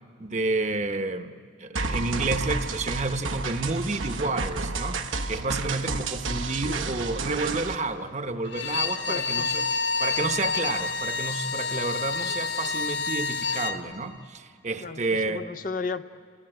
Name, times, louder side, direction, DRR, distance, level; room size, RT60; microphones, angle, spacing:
voice 1, 0.2-1.3 1.6-9.6 10.0-15.4, right 3 dB, 35° right, 8 dB, 1.0 m, -30 dB
sound 1, 1.8-7.8, right 3 dB, 85° right, 1.1 m, -31 dB
Bowed string instrument, 8.5-13.8, left 4 dB, 65° left, 1.2 m, -28 dB
voice 2, 9.1-9.5 14.8-16.0, left 4 dB, 45° left, 10 dB, 0.7 m, -34 dB
29.5 x 20.5 x 9.1 m, 2.1 s
head